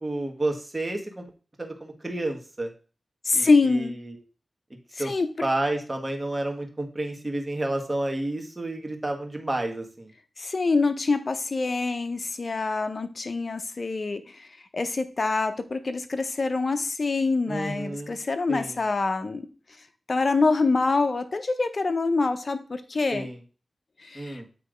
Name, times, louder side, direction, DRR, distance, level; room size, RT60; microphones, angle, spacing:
voice 1, 0.0-1.2 1.6-2.7 3.3-4.1 5.0-5.1 5.4-10.1 17.5-18.2 18.5-18.7 23.1-23.4 24.1-24.5, right 1 dB, 25° right, 3 dB, 1.6 m, -30 dB
voice 2, 3.2-3.9 4.9-5.5 10.4-14.5 14.7-19.5 20.1-23.3 24.0-24.4, left 3 dB, 55° left, 9 dB, 0.8 m, -25 dB
8.0 x 3.1 x 5.1 m, 0.37 s
cardioid pair, 55°, 0 cm